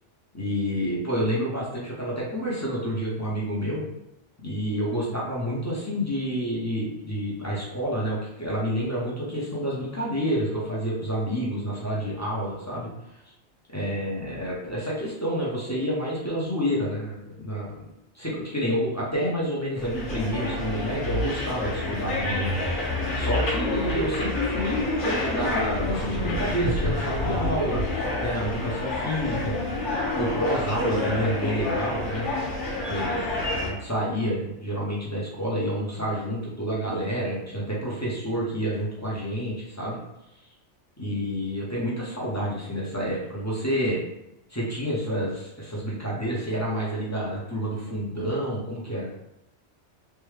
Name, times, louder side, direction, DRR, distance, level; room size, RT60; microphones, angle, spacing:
voice 1, 0.3-3.8 4.4-13.2 13.7-17.8 18.1-22.8 23.1-29.6 30.1-32.3 32.9-40.0 41.0-44.0 44.5-49.1, equal, 15° left, -6 dB, 0.7 m, -29 dB
sound 1, 19.8-33.7, left 2 dB, 85° left, 1.2 m, -28 dB
3.4 x 2.2 x 3.2 m, 0.87 s
omnidirectional pair, 1.2 m